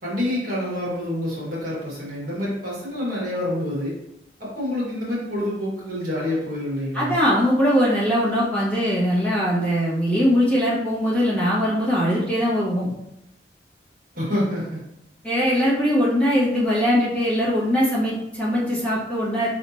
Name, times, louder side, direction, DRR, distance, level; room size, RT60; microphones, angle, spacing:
voice 1, 0.0-4.0 4.4-7.2 14.1-14.9, left 1 dB, 50° right, -5 dB, 1.6 m, -27 dB
voice 2, 6.9-12.9 15.2-19.5, equal, 5° left, -10 dB, 1.5 m, -21 dB
4.9 x 3.4 x 2.8 m, 0.84 s
head